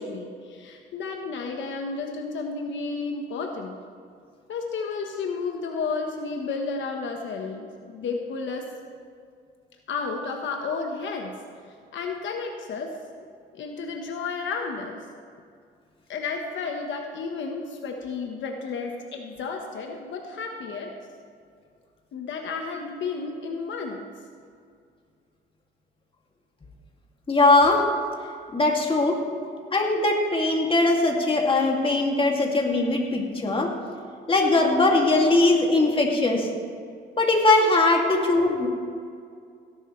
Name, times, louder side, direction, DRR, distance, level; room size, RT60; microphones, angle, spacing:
voice 1, 0.0-3.8 4.5-8.7 9.9-11.4 11.9-12.9 13.5-15.0 16.1-20.9 22.1-24.1 29.4-29.5 38.1-38.3, left 4 dB, 70° left, 2 dB, 1.2 m, -32 dB
voice 2, 27.3-27.9 28.5-29.2 29.7-33.7 34.3-36.5 37.2-38.7, left 2 dB, 25° left, 0 dB, 2.4 m, -20 dB
17.0 x 11.5 x 3.2 m, 2.2 s
cardioid pair, 90°, 20 cm